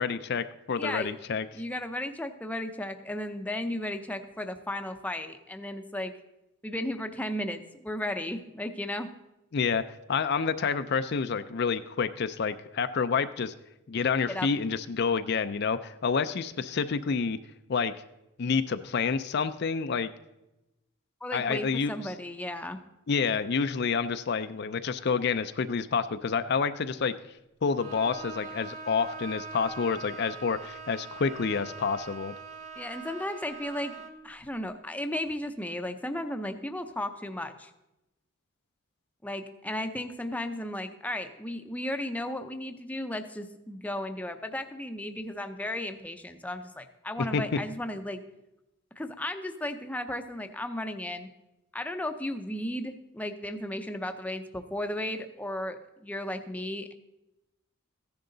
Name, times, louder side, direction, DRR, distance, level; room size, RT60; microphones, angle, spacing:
voice 1, 0.0-1.5 9.5-9.8 10.1-13.5 13.9-17.4 17.7-17.9 18.4-20.1 21.3-22.1 23.1-27.1 27.6-32.3 47.3-47.4, left 5 dB, 50° left, 10 dB, 0.4 m, -28 dB
voice 2, 0.7-1.1 1.5-6.2 6.6-9.1 14.2-14.5 21.2-22.8 32.8-33.9 34.2-37.7 39.2-48.2 49.0-51.3 51.7-56.9, left 1 dB, 5° left, 7 dB, 0.6 m, -35 dB
Bowed string instrument, 27.8-34.3, right 4 dB, 35° right, 1.1 m, -42 dB
15.0 x 10.5 x 3.9 m, 0.94 s
head